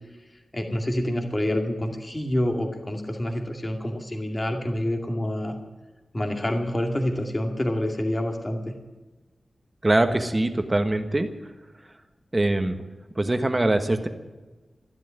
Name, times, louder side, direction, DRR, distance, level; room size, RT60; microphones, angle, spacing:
voice 1, 0.5-5.6 6.1-8.6, left 1 dB, 20° left, 3 dB, 2.3 m, -27 dB
voice 2, 9.8-11.3 12.3-12.8 13.1-14.1, right 2 dB, 20° right, 7 dB, 1.4 m, -22 dB
13.5 x 12.0 x 9.0 m, 1.2 s
wide cardioid pair, 125°, 0 cm